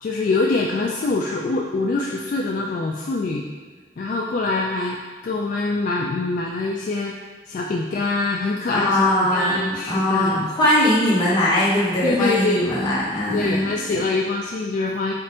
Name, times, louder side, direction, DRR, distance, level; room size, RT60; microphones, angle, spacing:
voice 1, 0.0-3.4 4.0-5.0 5.2-7.1 7.5-10.5 12.0-12.7 13.3-15.1, left 3 dB, 50° left, -1 dB, 0.3 m, -24 dB
voice 2, 8.7-14.0, left 1 dB, 25° left, -9 dB, 1.2 m, -21 dB
4.3 x 2.5 x 4.2 m, 1.5 s
head